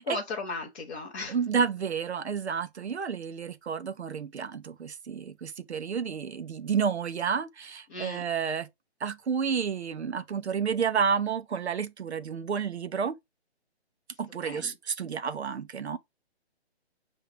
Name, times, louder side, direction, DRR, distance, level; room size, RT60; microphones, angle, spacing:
voice 1, 0.0-1.4 7.9-8.2 14.4-14.7, left 3 dB, 10° left, 0.5 m, -36 dB
voice 2, 1.3-8.7 9.0-13.2 14.2-16.0, right 6 dB, 80° right, 0.9 m, -30 dB
5.7 x 2.9 x 3.2 m
hypercardioid pair, 150°, 33 cm